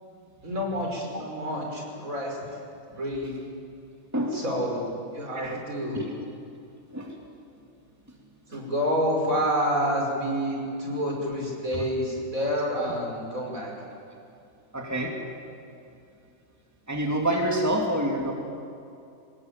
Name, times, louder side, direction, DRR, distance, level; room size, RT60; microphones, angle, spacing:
voice 1, 0.4-2.6 2.9-3.3 4.3-6.0 8.5-13.7, equal, 70° right, -1 dB, 6.1 m, -28 dB
voice 2, 4.1-4.4 5.3-5.6 5.9-6.1 6.9-7.1 8.5-8.6 11.7-11.8 14.7-15.2 16.9-18.3, right 1 dB, 10° right, 0 dB, 2.8 m, -27 dB
26.5 x 20.0 x 9.2 m, 2.6 s
omnidirectional pair, 1.5 m